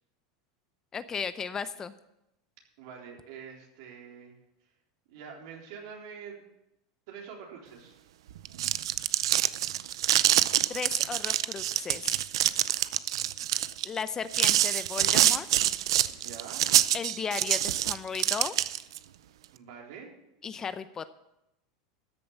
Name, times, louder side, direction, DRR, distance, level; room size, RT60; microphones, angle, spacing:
voice 1, 0.9-1.9 10.7-12.2 13.8-15.5 16.9-18.5 20.4-21.1, left 6 dB, 20° left, 13 dB, 0.5 m, -35 dB
voice 2, 2.8-4.4 5.1-6.4 7.1-8.0 16.1-16.6 19.5-20.1, right 7 dB, 70° right, 0 dB, 3.8 m, -45 dB
sound 1, 8.4-19.0, right 12 dB, 90° right, 0.5 m, -26 dB
13.5 x 6.9 x 7.1 m, 0.87 s
supercardioid pair, 135°, 3 cm